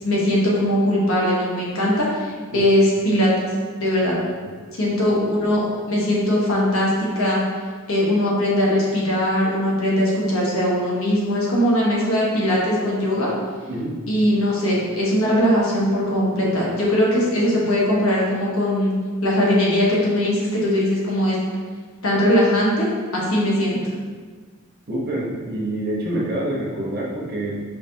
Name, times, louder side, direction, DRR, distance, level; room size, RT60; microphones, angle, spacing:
voice 1, 0.0-3.3 3.8-4.2 4.7-7.4 7.9-13.3 14.1-18.9 19.2-21.4 22.0-23.8, left 1 dB, 70° left, -5 dB, 1.2 m, -20 dB
voice 2, 24.9-27.6, right 1 dB, 45° right, -5 dB, 1.0 m, -26 dB
5.6 x 3.5 x 2.8 m, 1.5 s
head